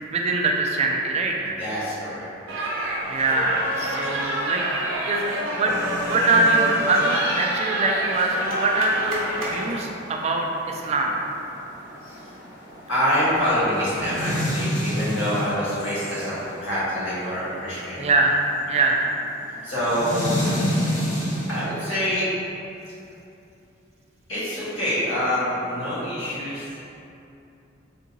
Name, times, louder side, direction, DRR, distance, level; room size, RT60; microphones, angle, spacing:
voice 1, 0.0-1.6 3.0-4.6 5.0-5.8 6.1-11.2 18.0-18.4 18.7-19.0, right 2 dB, 35° right, 1 dB, 0.3 m, -23 dB
voice 2, 1.6-2.6 12.0-12.2 12.9-18.1 19.6-20.4 21.5-22.3 24.3-26.8, equal, 85° left, -10 dB, 1.2 m, -26 dB
sound 1, 2.5-9.8, right 1 dB, 85° right, 0.7 m, -28 dB
sound 2, 4.4-22.1, equal, 65° left, 1.1 m, -32 dB
3.5 x 2.8 x 2.6 m, 2.8 s
head